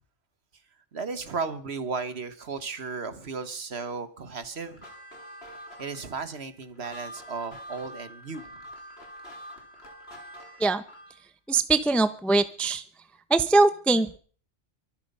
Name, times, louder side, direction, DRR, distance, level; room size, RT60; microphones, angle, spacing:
voice 1, 0.9-4.8 5.8-8.6, right 4 dB, 60° right, 1.6 m, -35 dB
sound 1, 4.6-11.2, equal, 55° left, 3.6 m, -45 dB
voice 2, 11.5-12.8 13.3-14.2, right 3 dB, ahead, 0.6 m, -22 dB
24.0 x 8.1 x 5.5 m
omnidirectional pair, 1.3 m